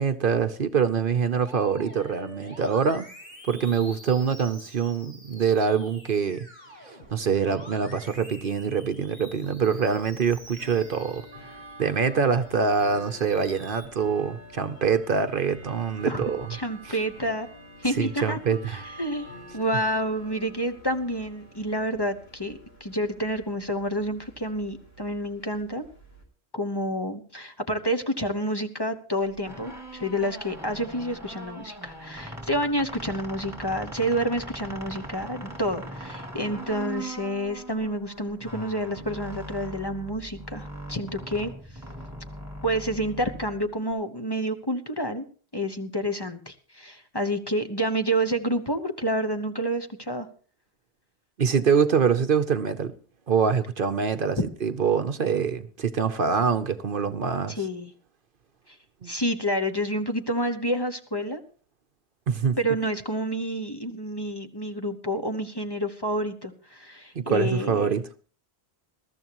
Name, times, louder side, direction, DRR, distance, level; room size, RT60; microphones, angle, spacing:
voice 1, 0.0-3.1 3.5-6.5 6.9-11.5 11.8-16.5 16.9-17.0 18.0-18.8 51.4-52.9 53.3-57.6 59.0-59.1 62.3-62.6 67.1-68.1, right 6 dB, 55° right, 0.9 m, -25 dB
Musical instrument, 1.4-11.8 12.3-13.8, equal, 45° left, 6.2 m, -48 dB
Bell / Tick-tock, 9.9-26.2, equal, 70° left, 4.6 m, -48 dB
voice 2, 16.5-17.5 17.8-18.4 18.7-25.9 26.5-41.5 42.6-45.2 45.5-50.3 57.5-57.9 58.7-58.8 59.0-61.4 62.6-67.9, equal, 25° left, 1.1 m, -29 dB
sound 1, 29.4-43.9, right 1 dB, 15° right, 3.1 m, -40 dB
21.5 x 13.5 x 3.0 m
omnidirectional pair, 1.1 m